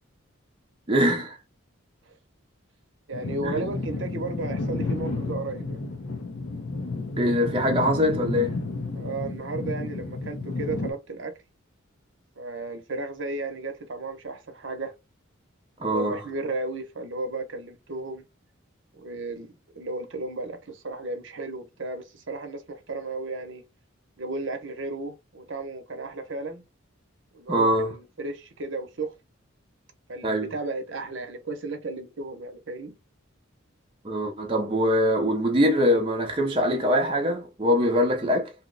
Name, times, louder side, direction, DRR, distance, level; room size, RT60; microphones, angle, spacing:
voice 1, 0.9-1.4 3.4-3.6 7.2-8.5 15.8-16.2 27.5-27.9 30.2-30.5 34.0-38.5, equal, 25° right, 0.5 m, -23 dB
sound 1, 3.1-10.9, left 3 dB, 75° left, 0.7 m, -31 dB
voice 2, 3.1-5.8 8.9-11.3 12.4-14.9 15.8-18.2 18.9-19.5 19.7-23.6 24.2-26.6 27.3-29.1 30.1-32.9, right 2 dB, 60° right, 0.7 m, -34 dB
2.8 x 2.0 x 3.8 m
head